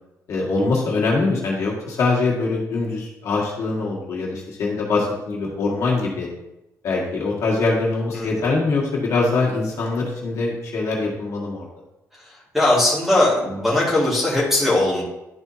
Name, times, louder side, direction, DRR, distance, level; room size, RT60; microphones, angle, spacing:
voice 1, 0.3-6.3 6.8-11.7, left 3 dB, 55° left, -3 dB, 1.7 m, -23 dB
voice 2, 12.5-15.0, left 1 dB, 5° right, -7 dB, 2.2 m, -19 dB
11.5 x 4.5 x 2.8 m, 0.95 s
cardioid pair, 165°, 6 cm